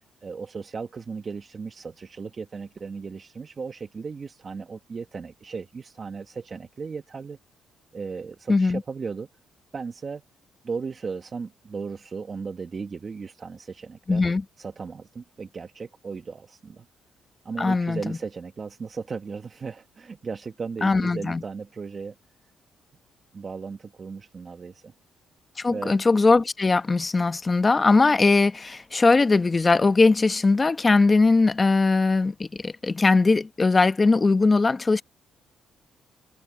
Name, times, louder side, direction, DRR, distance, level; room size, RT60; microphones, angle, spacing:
voice 1, 0.0-7.4 7.9-9.3 9.7-10.2 10.6-14.2 14.6-16.8 17.4-22.1 23.3-24.9 25.7-25.9, right 5 dB, 40° right, 1.4 m, -36 dB
voice 2, 8.5-8.8 14.1-14.4 17.6-18.2 20.8-21.4 25.6-35.0, left 3 dB, 25° left, 1.2 m, -20 dB
cardioid pair, 90°, 0 cm